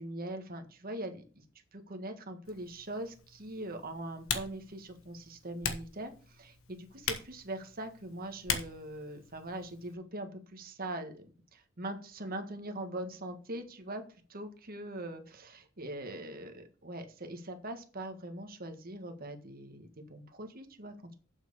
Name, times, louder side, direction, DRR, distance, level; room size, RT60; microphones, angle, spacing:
voice 1, 0.0-1.4 1.7-14.0 14.3-21.1, right 1 dB, 45° right, 6 dB, 1.6 m, -42 dB
Typing, 2.4-9.9, left 7 dB, 75° left, 1.4 m, -41 dB
7.6 x 6.1 x 6.8 m, 0.39 s
head